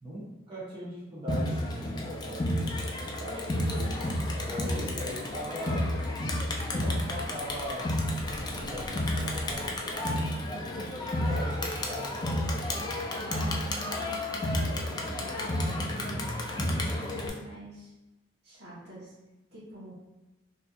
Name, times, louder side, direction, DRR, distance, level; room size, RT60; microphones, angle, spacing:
voice 1, 0.0-2.7 3.0-5.8 6.7-7.9 8.3-10.9 11.2-12.9, equal, 25° right, -9 dB, 1.0 m, -40 dB
Crowd, 1.3-17.3, left 1 dB, 20° left, 0.3 m, -31 dB
voice 2, 10.5-11.0 13.2-17.9 18.4-19.2 19.5-19.9, equal, 55° right, -7 dB, 1.1 m, -45 dB
4.0 x 2.7 x 2.3 m, 1.0 s
head